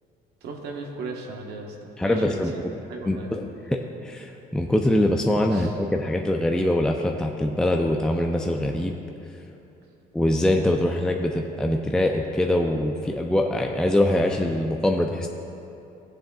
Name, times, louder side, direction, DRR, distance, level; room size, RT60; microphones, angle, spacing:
voice 1, 0.4-2.5 2.9-3.3 5.5-5.8, right 3 dB, 75° right, 1 dB, 1.3 m, -36 dB
voice 2, 2.0-2.5 3.1-9.0 10.1-15.3, left 1 dB, 5° left, 2 dB, 0.4 m, -23 dB
15.5 x 7.5 x 2.4 m, 2.9 s
cardioid pair, 110°, 17 cm